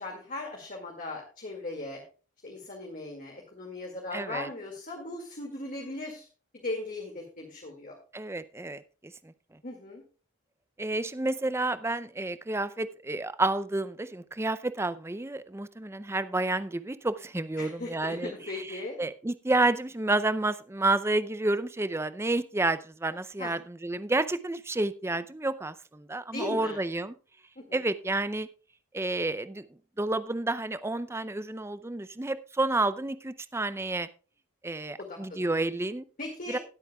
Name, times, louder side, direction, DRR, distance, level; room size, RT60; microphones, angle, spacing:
voice 1, 0.0-2.0 2.4-6.3 6.5-8.0 9.6-10.0 17.6-19.0 23.4-23.5 26.3-26.8 27.6-27.8 35.0-35.5 36.2-36.6, left 2 dB, 40° left, 0 dB, 2.1 m, -38 dB
voice 2, 4.1-4.5 8.1-8.8 9.2-9.3 10.8-27.1 27.7-28.5 28.9-29.7 30.0-34.1 34.6-36.0 36.5-36.6, right 2 dB, 10° right, 14 dB, 0.5 m, -30 dB
20.0 x 8.3 x 2.3 m, 0.36 s
head